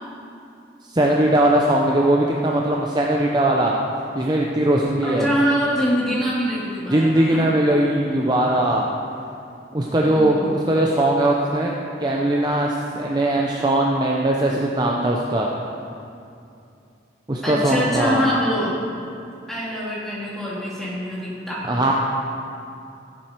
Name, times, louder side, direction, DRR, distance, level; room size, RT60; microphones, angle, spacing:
voice 1, 0.8-3.7 4.1-5.3 6.9-8.8 9.7-11.7 12.0-15.5 17.3-18.2 21.7-21.9, right 1 dB, 20° right, -2 dB, 0.6 m, -20 dB
voice 2, 5.0-7.5 10.0-10.5 17.4-18.8 19.5-21.6, equal, ahead, -8 dB, 2.7 m, -24 dB
15.5 x 7.7 x 4.5 m, 2.6 s
head